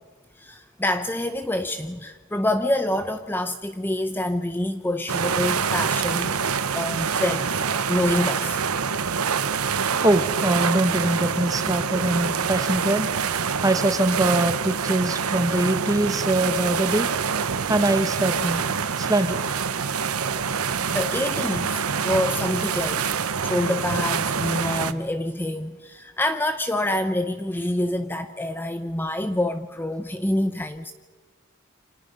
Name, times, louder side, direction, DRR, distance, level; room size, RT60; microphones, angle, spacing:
voice 1, 0.4-7.6 7.9-8.6 11.9-12.0 20.9-23.2 23.4-30.9, left 1 dB, 10° left, 9 dB, 0.7 m, -27 dB
sound 1, 5.1-24.9, right 6 dB, 90° right, 1.0 m, -26 dB
voice 2, 10.0-13.1 13.6-17.1 17.7-18.7 19.0-19.4, right 1 dB, 15° right, 10 dB, 1.3 m, -23 dB
29.0 x 26.5 x 5.5 m, 1.3 s
head